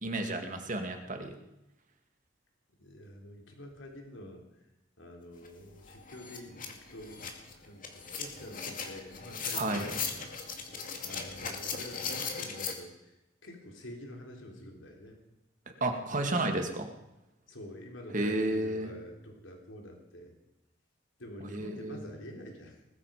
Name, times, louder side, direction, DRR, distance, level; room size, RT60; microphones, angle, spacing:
voice 1, 0.0-1.3 9.5-9.9 15.8-16.9 18.1-18.9 21.5-22.0, right 2 dB, 40° right, 4 dB, 2.3 m, -32 dB
voice 2, 2.8-4.7 5.0-10.3 11.0-13.2 13.4-15.2 17.5-20.3 21.2-22.8, left 1 dB, 75° left, 1 dB, 3.6 m, -47 dB
sound 1, 5.4-5.5 5.9-12.7, left 5 dB, 45° left, 2.3 m, -38 dB
20.0 x 14.0 x 5.2 m, 0.93 s
head